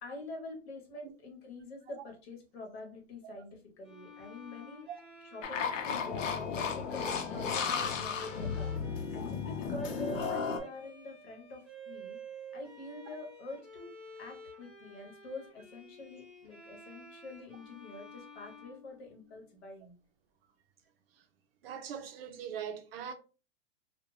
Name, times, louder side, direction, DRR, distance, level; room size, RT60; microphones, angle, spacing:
voice 1, 0.0-4.9 5.2-8.8 9.1-12.2 12.5-13.9 14.2-19.9, left 2 dB, 55° left, 1.1 m, -46 dB
Bowed string instrument, 3.8-19.6, right 2 dB, ahead, 0.3 m, -50 dB
sound 1, 5.4-10.6, left 6 dB, 85° left, 0.7 m, -34 dB
voice 2, 21.6-23.1, right 8 dB, 50° right, 0.6 m, -41 dB
2.4 x 2.2 x 3.1 m
hypercardioid pair, 155°, 37 cm